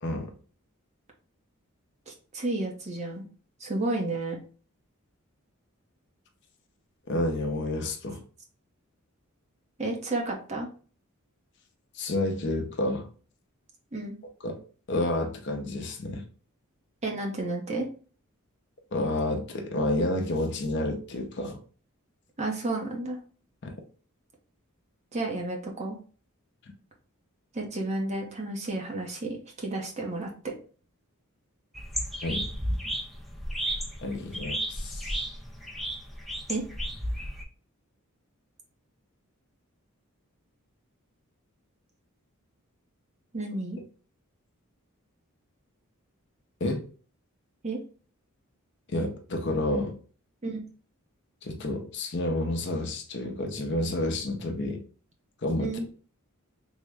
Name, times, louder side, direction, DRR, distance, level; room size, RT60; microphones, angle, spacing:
voice 1, 0.0-0.3 7.1-8.2 11.9-13.1 14.4-14.6 14.9-16.2 18.9-21.6 23.6-23.7 32.2-32.5 34.0-35.2 46.6-46.8 48.9-50.0 51.4-54.8 55.4-55.7, left 1 dB, 55° left, 4 dB, 0.6 m, -29 dB
voice 2, 2.1-3.3 3.6-4.4 9.8-10.7 13.9-14.2 17.0-17.9 22.4-23.2 25.1-26.0 27.5-30.5 36.5-36.6 43.3-43.8 47.6-47.8 50.4-50.6 55.6-55.9, right 2 dB, 30° right, 0 dB, 0.7 m, -31 dB
sound 1, 31.7-37.4, equal, ahead, 0.4 m, -33 dB
3.5 x 2.1 x 3.4 m, 0.40 s
head